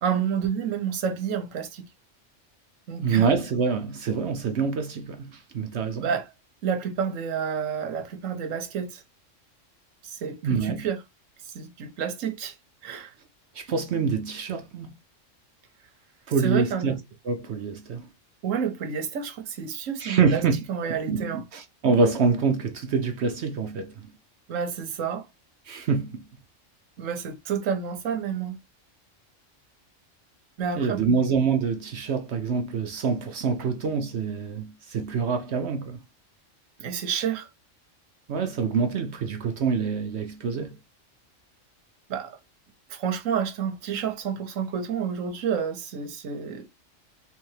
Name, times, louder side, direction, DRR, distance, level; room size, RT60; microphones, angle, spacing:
voice 1, 0.0-1.9 2.9-3.3 6.0-6.3 6.6-9.0 10.0-11.0 11.5-12.6 12.8-13.1 16.4-17.0 18.4-21.4 24.5-25.3 27.0-28.6 30.6-31.2 36.8-37.5 42.1-42.4 42.9-46.7, right 7 dB, 85° right, 1.2 m, -29 dB
voice 2, 3.0-6.1 10.4-10.8 13.5-14.9 16.3-17.0 17.3-18.1 20.0-20.6 21.1-24.1 25.7-26.2 30.7-36.0 38.3-40.7, right 5 dB, 65° right, 0.8 m, -26 dB
3.4 x 3.3 x 3.1 m
omnidirectional pair, 1.3 m